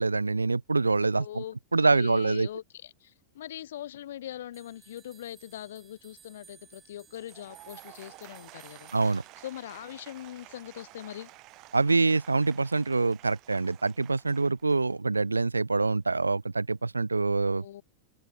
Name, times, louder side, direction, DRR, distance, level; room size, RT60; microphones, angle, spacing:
voice 1, 0.0-1.4 1.7-2.5 8.9-9.2 11.7-17.6, right 3 dB, 80° right, 0.4 m, -25 dB
voice 2, 1.1-1.6 1.9-11.3 17.5-17.8, left 12 dB, 60° left, 0.9 m, -42 dB
sound 1, 4.5-9.8, right 7 dB, 20° right, 2.7 m, -58 dB
Applause / Crowd, 7.1-15.3, right 21 dB, 40° right, 2.1 m, -52 dB
open air
figure-of-eight pair, 90°, 0 cm